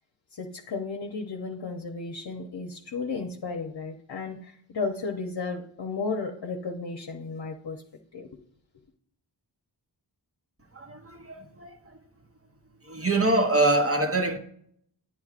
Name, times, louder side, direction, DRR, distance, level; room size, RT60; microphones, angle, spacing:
voice 1, 0.3-7.8 8.1-8.4, left 4 dB, 60° left, 0.8 m, -34 dB
voice 2, 10.7-12.0 12.8-14.4, right 2 dB, 30° right, 1.0 m, -25 dB
10.5 x 9.3 x 2.5 m
wide cardioid pair, 55°, 45 cm